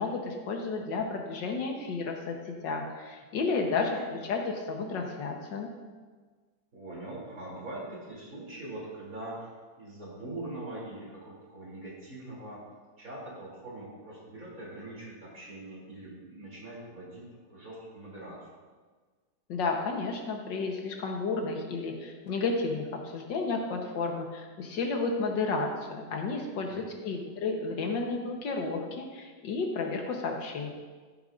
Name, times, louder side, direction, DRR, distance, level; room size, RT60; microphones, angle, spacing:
voice 1, 0.0-5.7 19.5-22.9 23.1-30.7, left 4 dB, 85° left, 2 dB, 1.8 m, -32 dB
voice 2, 6.7-9.5 9.8-12.7 13.0-18.5 26.6-26.9, right 2 dB, 50° right, -5 dB, 3.6 m, -42 dB
14.0 x 8.8 x 2.6 m, 1.4 s
omnidirectional pair, 1.9 m